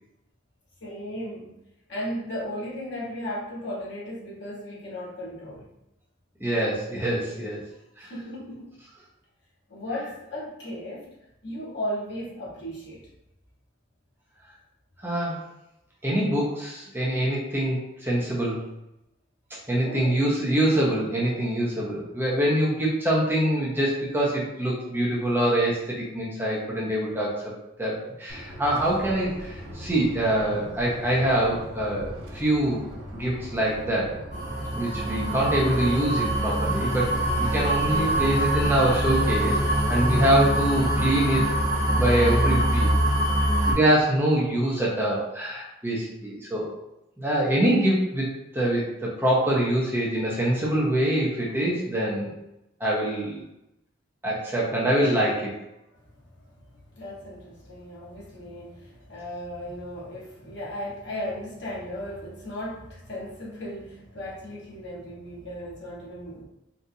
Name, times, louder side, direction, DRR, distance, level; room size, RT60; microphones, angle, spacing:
voice 1, 0.8-1.5 1.9-5.7 8.1-8.7 9.7-11.1 11.4-13.0 19.7-20.3 56.9-66.4, equal, 65° left, -6 dB, 1.2 m, -36 dB
voice 2, 6.4-7.6 8.0-8.1 15.0-15.4 16.0-18.6 19.7-27.4 27.8-32.8 33.1-34.1 34.7-37.1 37.4-39.6 39.9-41.4 41.9-42.9 43.7-46.7 47.2-48.2 48.5-52.3 52.8-53.4 54.2-55.5, right 1 dB, 10° right, -5 dB, 0.6 m, -24 dB
Viral Vintage Firefly, 28.3-42.0, equal, 85° right, 0.7 m, -39 dB
sound 1, 34.3-43.7, right 1 dB, 40° right, 1.2 m, -24 dB
3.9 x 2.4 x 2.7 m, 0.88 s
head